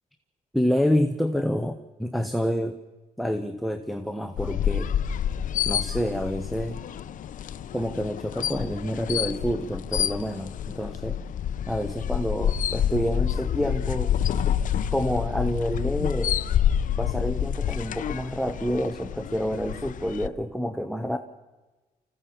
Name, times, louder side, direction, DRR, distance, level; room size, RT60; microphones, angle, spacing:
voice 1, 0.5-2.8 3.2-4.9 5.7-6.8 7.7-11.2 11.7-14.1 14.9-16.4 17.0-21.2, equal, ahead, 7 dB, 1.0 m, -28 dB
sound 1, 4.4-20.3, left 9 dB, 65° left, 0.7 m, -28 dB
26.0 x 15.5 x 7.2 m, 1.2 s
cardioid pair, 110°, 14 cm